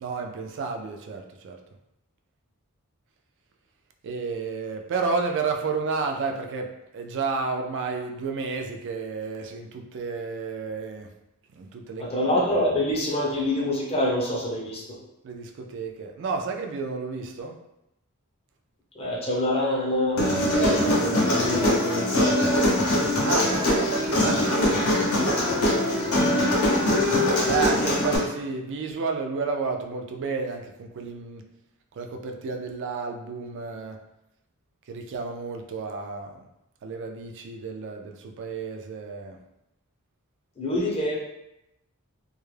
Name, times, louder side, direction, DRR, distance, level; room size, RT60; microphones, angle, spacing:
voice 1, 0.0-1.6 4.0-11.1 11.5-12.1 15.2-17.5 23.2-26.4 27.4-31.4 32.0-34.0 34.9-36.4 36.8-39.4, right 4 dB, 55° right, 4 dB, 0.3 m, -31 dB
voice 2, 12.0-15.0 18.9-22.5 40.6-41.2, left 1 dB, 25° left, -4 dB, 0.6 m, -26 dB
Human voice, 20.2-28.2, left 1 dB, 70° left, 0.7 m, -22 dB
2.3 x 2.0 x 3.1 m, 0.87 s
head